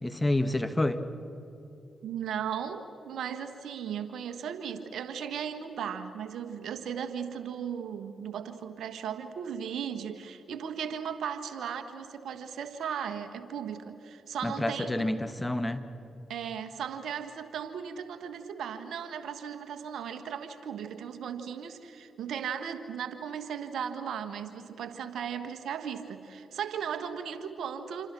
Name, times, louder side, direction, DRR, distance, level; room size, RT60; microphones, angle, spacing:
voice 1, 0.0-1.0 14.4-15.8, left 1 dB, 15° left, 10 dB, 1.7 m, -28 dB
voice 2, 2.0-15.1 16.3-28.1, right 8 dB, 75° right, 9 dB, 1.5 m, -36 dB
27.5 x 26.0 x 6.2 m, 3.0 s
hypercardioid pair, 45°, 0 cm